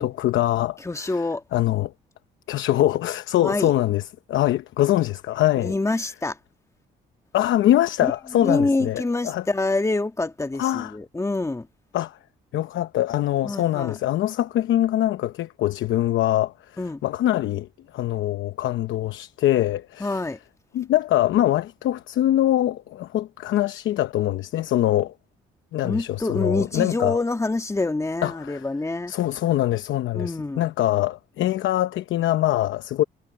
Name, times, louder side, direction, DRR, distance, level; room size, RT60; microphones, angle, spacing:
voice 1, 0.0-1.2 1.5-1.9 2.5-4.0 4.3-5.7 7.3-9.4 10.6-10.9 11.9-12.2 12.5-20.2 20.7-25.1 25.7-27.2 28.2-28.6 29.1-33.0, left 13 dB, 80° left, 0.8 m, -23 dB
voice 2, 0.8-1.4 3.4-3.7 5.6-6.4 8.0-11.7 13.4-13.9 16.8-17.0 20.0-20.4 25.8-29.1 30.1-30.6, left 2 dB, 15° left, 1.8 m, -26 dB
cardioid pair, 90°, 20 cm